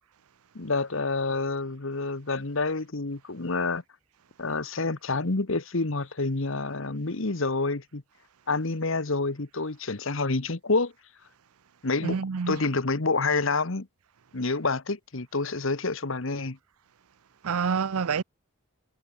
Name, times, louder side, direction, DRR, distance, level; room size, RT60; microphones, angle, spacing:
voice 1, 0.5-3.8 4.4-8.0 8.5-10.9 11.8-12.2 12.5-13.9 14.3-16.6, left 3 dB, 60° left, 1.2 m, -28 dB
voice 2, 12.0-12.6 17.4-18.2, right 6 dB, 80° right, 0.6 m, -27 dB
head